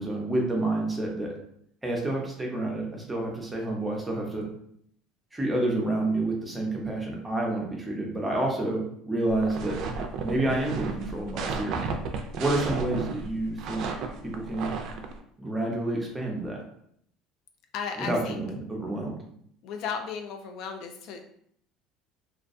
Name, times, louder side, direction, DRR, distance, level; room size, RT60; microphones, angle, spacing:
voice 1, 0.0-1.3 1.8-4.5 5.3-9.8 10.2-11.7 12.4-13.9 14.2-14.7 15.4-16.6 18.0-19.2, right 2 dB, 10° right, -1 dB, 0.6 m, -29 dB
sound 1, 9.3-15.1, right 4 dB, 60° right, 0.3 m, -33 dB
voice 2, 17.7-18.4 19.6-21.3, left 6 dB, 65° left, 5 dB, 0.3 m, -35 dB
2.3 x 2.2 x 2.6 m, 0.68 s
cardioid pair, 125°, 0 cm